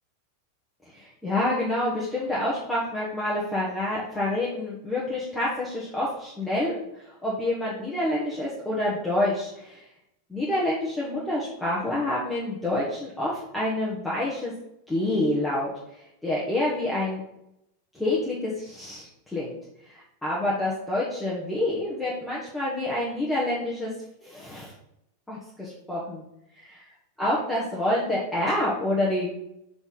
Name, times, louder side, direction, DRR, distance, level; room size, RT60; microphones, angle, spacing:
voice 1, 0.9-9.8 10.3-14.5 14.9-15.7 16.2-17.2 17.9-19.5 19.9-23.9 24.2-24.7 25.3-26.2 27.2-29.3, left 1 dB, 5° left, -7 dB, 1.4 m, -27 dB
5.9 x 4.0 x 5.6 m, 0.82 s
figure-of-eight pair, 90°, 0 cm